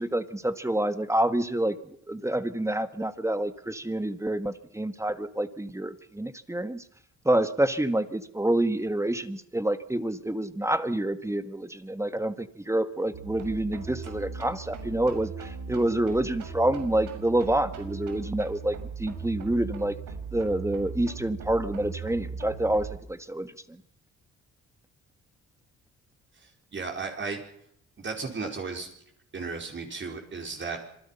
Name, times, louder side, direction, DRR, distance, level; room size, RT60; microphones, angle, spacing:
voice 1, 0.0-1.8 2.1-6.8 7.2-20.0 20.3-23.8, right 1 dB, 10° right, 10 dB, 1.7 m, -28 dB
sound 1, 13.1-23.0, right 5 dB, 85° right, 6.3 m, -39 dB
voice 2, 26.7-27.4 28.0-28.9 29.3-30.8, right 4 dB, 40° right, 2 dB, 4.7 m, -34 dB
26.5 x 20.0 x 5.8 m, 0.73 s
cardioid pair, 90°, 30 cm